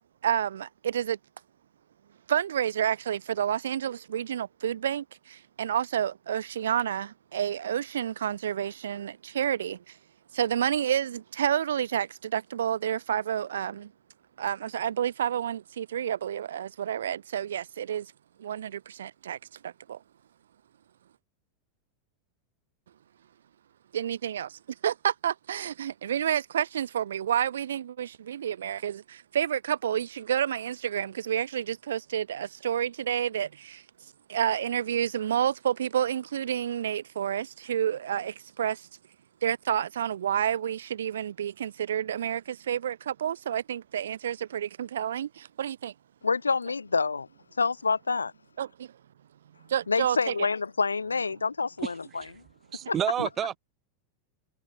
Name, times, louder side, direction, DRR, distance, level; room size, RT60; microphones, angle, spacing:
voice 1, 0.2-1.2 2.3-10.0 10.3-13.9 14.4-18.1 18.4-19.4 19.6-20.0 23.9-33.8 34.3-38.9 39.4-45.9 48.6-48.9 49.7-50.5 52.8-52.9, right 9 dB, 65° right, 1.3 m, -29 dB
voice 2, 46.2-47.3 47.6-48.3 49.9-51.9 52.9-53.0, left 4 dB, 75° left, 2.4 m, -27 dB
voice 3, 51.8-52.3 52.7-53.6, right 10 dB, 25° right, 1.9 m, -30 dB
figure-of-eight pair, 90°, 0 cm